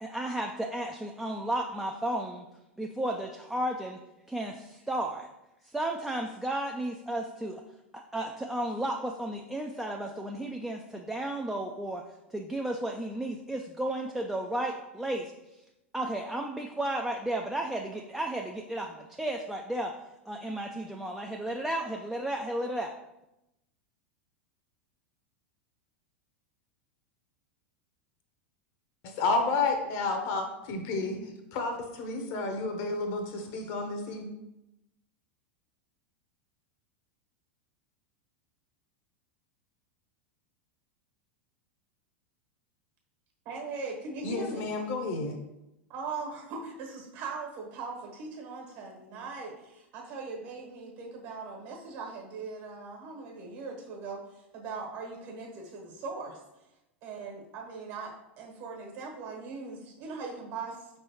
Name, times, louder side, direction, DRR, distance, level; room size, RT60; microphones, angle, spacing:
voice 1, 0.0-2.4 2.8-4.0 4.3-5.3 5.6-7.6 7.9-12.0 12.3-15.3 15.9-19.9 20.3-22.9, right 1 dB, 5° right, 1 dB, 0.3 m, -33 dB
voice 2, 29.0-34.3 44.2-45.4, left 3 dB, 50° left, 5 dB, 0.8 m, -31 dB
voice 3, 43.4-44.7 45.9-54.2 54.5-56.4 57.0-60.9, right 4 dB, 50° right, 0 dB, 1.3 m, -40 dB
5.2 x 3.3 x 2.9 m, 0.91 s
figure-of-eight pair, 85°, 7 cm